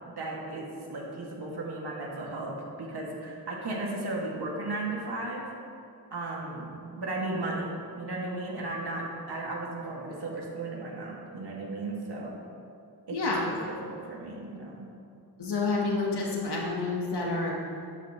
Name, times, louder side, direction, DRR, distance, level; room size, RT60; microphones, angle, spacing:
voice 1, 0.2-5.5 6.1-12.4 13.1-14.9, right 2 dB, 80° right, -3 dB, 2.2 m, -35 dB
voice 2, 13.1-13.6 15.4-17.5, left 3 dB, 85° left, -2 dB, 1.5 m, -29 dB
13.5 x 10.5 x 3.1 m, 2.5 s
wide cardioid pair, 115°, 39 cm